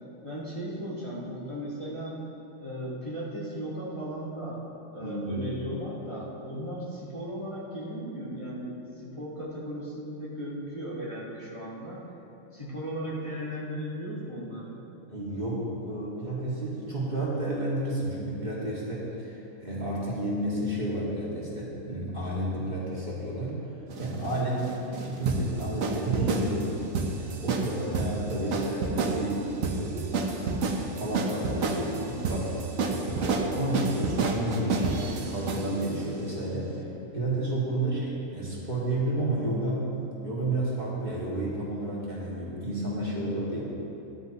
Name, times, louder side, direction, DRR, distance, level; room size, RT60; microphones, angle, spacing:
voice 1, 0.2-2.3 2.6-4.6 4.9-12.1 12.5-14.8 24.4-24.8 28.3-28.7 37.7-38.0, equal, 25° left, -8 dB, 1.7 m, -36 dB
voice 2, 5.0-5.5 15.1-23.6 24.0-24.6 24.9-26.7 27.2-36.7 37.1-39.9 40.2-43.7, right 1 dB, 35° right, -7 dB, 2.2 m, -31 dB
sound 1, 23.9-35.9, right 4 dB, 90° right, 1.3 m, -30 dB
13.0 x 11.5 x 2.9 m, 2.9 s
omnidirectional pair, 1.4 m